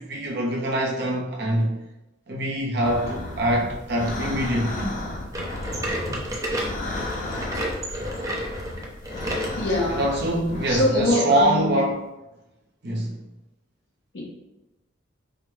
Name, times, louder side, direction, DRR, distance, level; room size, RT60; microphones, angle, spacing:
voice 1, 0.0-1.7 2.3-4.9 9.9-12.0 12.8-13.2, right 1 dB, 55° right, 0 dB, 0.7 m, -24 dB
sound 1, 2.8-10.9, left 2 dB, 40° left, 0.4 m, -33 dB
sound 2, 5.3-9.6 10.1-10.2 10.9-11.0 11.9-12.0, equal, 15° right, 0.6 m, -31 dB
voice 2, 9.6-10.0 10.7-11.7 14.1-14.2, left 1 dB, 65° left, -4 dB, 0.9 m, -24 dB
4.8 x 2.1 x 3.2 m, 0.96 s
head